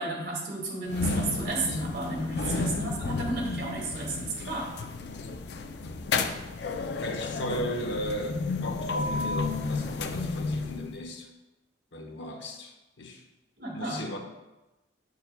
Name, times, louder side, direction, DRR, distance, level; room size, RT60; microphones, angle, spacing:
voice 1, 0.0-4.7 13.6-14.2, right 2 dB, 60° right, -2 dB, 1.9 m, -33 dB
sound 1, 0.9-11.0, left 3 dB, 65° left, 0.4 m, -32 dB
voice 2, 5.0-5.3 5.8-6.0 7.0-11.3 11.9-13.2 13.7-14.2, equal, 85° left, 3 dB, 0.9 m, -36 dB
8.0 x 6.8 x 2.2 m, 1.0 s
head